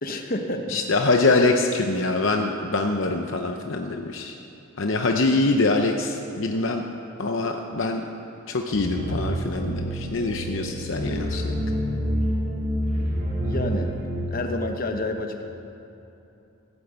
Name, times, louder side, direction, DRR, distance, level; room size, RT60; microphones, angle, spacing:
voice 1, 0.0-0.8 13.4-14.0 14.3-15.5, left 2 dB, 40° left, 4 dB, 1.1 m, -29 dB
voice 2, 0.7-4.4 4.8-6.8 7.2-8.0 8.5-11.6, left 3 dB, 60° left, 4 dB, 0.8 m, -24 dB
sound 1, 8.7-14.3, equal, 40° right, 2.9 m, -27 dB
15.5 x 8.8 x 8.1 m, 2.9 s
head